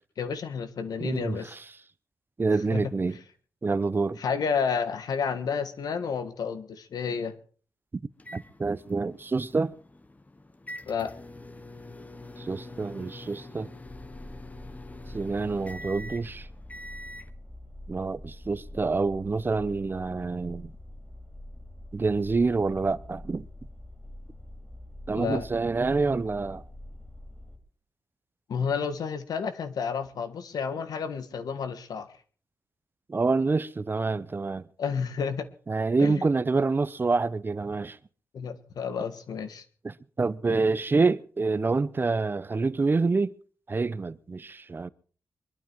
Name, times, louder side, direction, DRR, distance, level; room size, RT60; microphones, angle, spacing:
voice 1, 0.2-1.5 2.7-2.9 4.2-7.4 10.9-11.1 25.1-25.5 28.5-32.1 34.8-35.5 36.0-36.2 38.3-39.6, left 6 dB, 90° left, 1.5 m, -30 dB
voice 2, 1.0-1.6 2.4-3.2 3.6-4.2 7.9-8.0 8.3-9.8 12.4-13.7 15.1-16.5 17.9-20.7 21.9-23.5 25.1-26.6 33.1-34.6 35.7-38.0 39.8-43.4 43.7-44.9, right 3 dB, 35° right, 0.7 m, -27 dB
sound 1, 8.2-17.3, left 1 dB, 25° left, 1.0 m, -45 dB
sound 2, 13.9-27.6, left 1 dB, 5° right, 4.3 m, -45 dB
23.0 x 12.0 x 4.6 m
wide cardioid pair, 90°, 6 cm